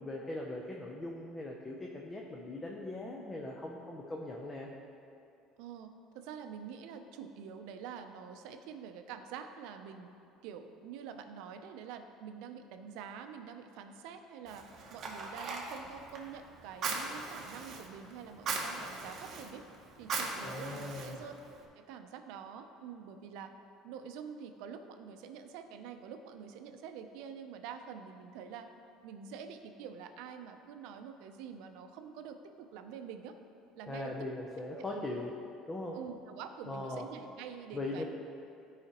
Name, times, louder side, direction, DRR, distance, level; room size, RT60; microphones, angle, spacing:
voice 1, 0.0-4.7 20.4-21.2 33.9-35.3 35.7-36.0 36.7-37.1 37.7-38.0, left 2 dB, 15° left, -1 dB, 0.5 m, -40 dB
voice 2, 5.6-5.9 6.1-10.1 10.4-19.6 20.0-21.3 21.8-23.5 23.8-28.7 29.0-33.3 33.7-34.1 34.7-35.1 35.9-38.0, right 7 dB, 75° right, 7 dB, 0.5 m, -46 dB
Fire, 14.5-21.6, right 4 dB, 35° right, 0.9 m, -40 dB
13.0 x 4.8 x 2.9 m, 2.6 s
cardioid pair, 165°, 0 cm